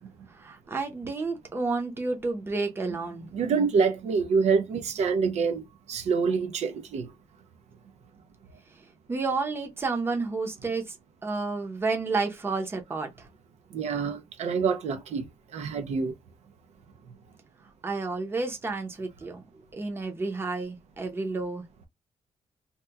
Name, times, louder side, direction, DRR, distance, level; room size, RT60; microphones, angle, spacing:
voice 1, 0.4-3.3 9.1-10.9 11.2-13.1 17.8-19.4 19.7-21.9, right 3 dB, 20° right, 0.7 m, -30 dB
voice 2, 3.3-7.1 13.7-15.3 15.5-16.1, right 5 dB, 70° right, 0.5 m, -26 dB
2.9 x 2.2 x 3.4 m
wide cardioid pair, 165°, 12 cm